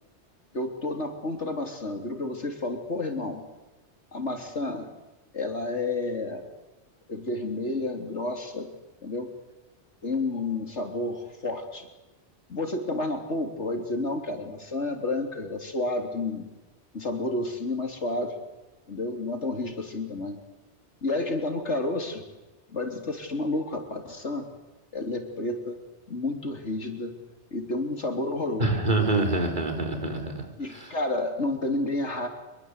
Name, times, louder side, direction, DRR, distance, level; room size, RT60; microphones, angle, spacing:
voice 1, 0.5-3.4 4.1-4.9 5.3-6.5 7.1-8.7 9.0-9.3 10.0-11.9 12.5-16.5 16.9-18.3 18.9-20.4 21.0-22.2 22.7-24.5 24.9-25.8 26.1-27.2 27.5-28.8 30.6-32.3, left 2 dB, 70° left, 5 dB, 3.8 m, -30 dB
voice 2, 28.6-30.5 30.7-30.9, right 2 dB, 40° right, 3 dB, 4.7 m, -26 dB
25.0 x 23.5 x 8.3 m, 1.1 s
omnidirectional pair, 1.2 m